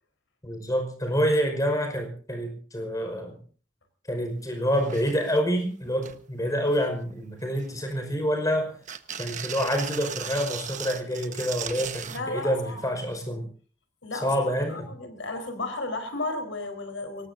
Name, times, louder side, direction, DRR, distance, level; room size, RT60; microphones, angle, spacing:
voice 1, 0.4-3.4 4.1-8.8 9.2-13.5 14.1-14.9, equal, 20° left, 5 dB, 5.4 m, -27 dB
sound 1, 4.4-4.5 4.7-5.4 5.8-6.2 6.6-7.1 7.6-8.4 8.8-12.2 13.3-13.4, right 8 dB, 40° right, 1.3 m, -37 dB
voice 2, 12.1-13.0 14.0-14.3 14.7-17.3, left 2 dB, 80° left, 6 dB, 4.6 m, -33 dB
24.5 x 19.5 x 2.8 m, 0.42 s
head